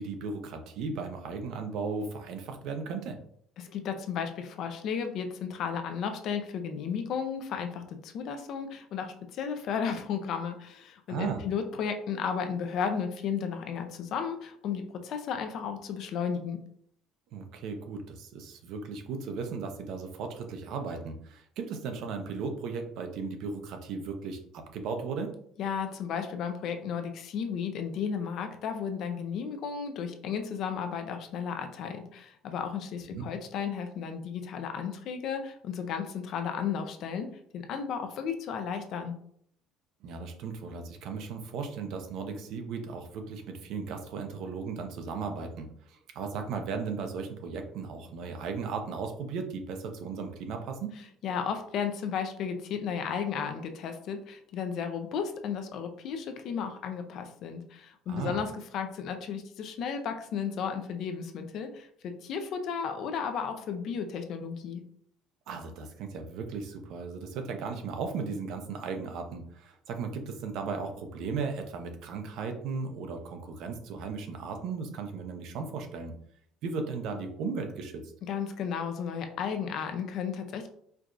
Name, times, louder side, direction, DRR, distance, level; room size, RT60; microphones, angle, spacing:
voice 1, 0.0-3.2 11.1-11.4 17.3-25.3 33.1-33.2 40.0-50.9 58.1-58.4 65.5-76.1 76.6-78.0, right 5 dB, 55° right, 5 dB, 0.5 m, -36 dB
voice 2, 3.6-16.6 25.6-39.1 51.2-64.8 78.3-80.7, left 7 dB, 45° left, 7 dB, 0.4 m, -34 dB
4.5 x 2.4 x 2.5 m, 0.64 s
cardioid pair, 170°, 0 cm